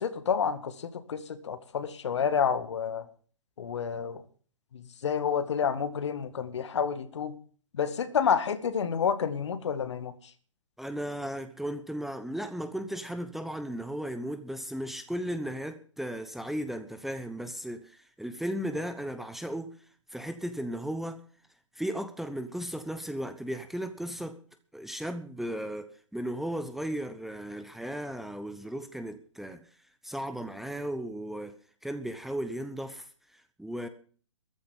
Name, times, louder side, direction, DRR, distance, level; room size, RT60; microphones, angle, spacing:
voice 1, 0.0-3.1 3.6-4.2 4.7-7.3 7.7-10.1, left 7 dB, 65° left, 2.0 m, -29 dB
voice 2, 10.8-19.7 20.1-21.2 21.7-24.4 24.7-29.6 30.0-31.5 31.8-33.9, equal, ahead, 1.0 m, -35 dB
14.0 x 10.5 x 7.3 m
hypercardioid pair, 130°, 16 cm